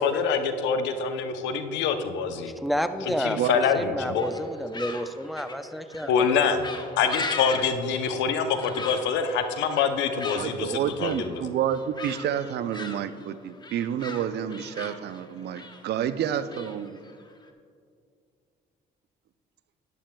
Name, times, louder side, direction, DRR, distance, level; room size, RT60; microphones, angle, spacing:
voice 1, 0.0-2.5 3.1-4.3 6.1-6.7 7.0-11.5, left 6 dB, 80° left, 8 dB, 0.7 m, -25 dB
voice 2, 2.6-6.3, equal, ahead, 10 dB, 0.5 m, -30 dB
voice 3, 3.4-4.0 10.3-17.0, right 9 dB, 65° right, 13 dB, 0.5 m, -29 dB
sound 1, 4.2-17.5, left 3 dB, 25° left, 0.9 m, -39 dB
11.5 x 10.5 x 2.3 m, 2.2 s
supercardioid pair, 70°, 18 cm